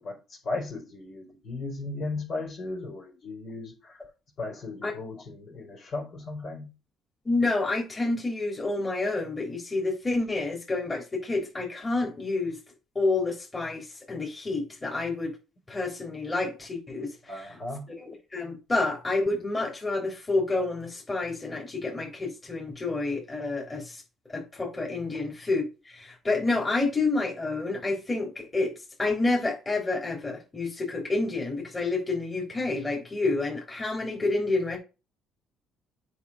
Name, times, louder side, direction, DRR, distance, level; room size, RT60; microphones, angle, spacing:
voice 1, 0.0-4.0 4.4-6.7 17.3-17.9, left 2 dB, 55° left, 4.6 m, -36 dB
voice 2, 7.3-12.6 13.0-15.3 15.7-17.1 18.0-24.0 24.3-28.7 29.0-34.8, left 3 dB, 25° left, 3.6 m, -29 dB
8.4 x 5.3 x 5.0 m
supercardioid pair, 70°, 0 cm